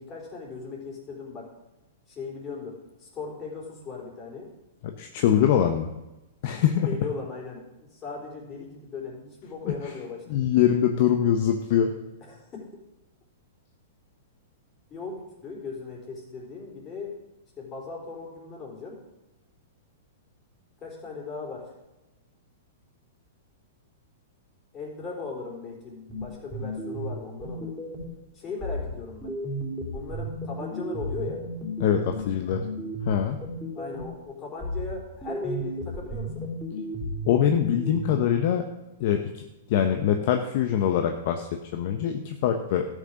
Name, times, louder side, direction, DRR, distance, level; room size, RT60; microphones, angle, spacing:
voice 1, 0.0-1.5 2.1-4.5 6.8-10.3 12.2-12.7 14.9-17.1 17.6-19.0 20.8-21.7 24.7-27.8 28.3-29.4 29.9-31.4 33.7-36.5, left 4 dB, 30° left, -1 dB, 4.1 m, -38 dB
voice 2, 5.0-5.9 6.4-6.9 10.3-11.9 31.8-32.6 33.1-33.4 37.3-38.6 39.0-39.4 39.7-42.9, left 9 dB, 55° left, 5 dB, 0.9 m, -23 dB
sound 1, 26.1-28.2 28.6-34.2 34.6-38.2, equal, 5° left, 3.6 m, -34 dB
13.0 x 6.6 x 6.4 m, 0.99 s
hypercardioid pair, 110°, 0 cm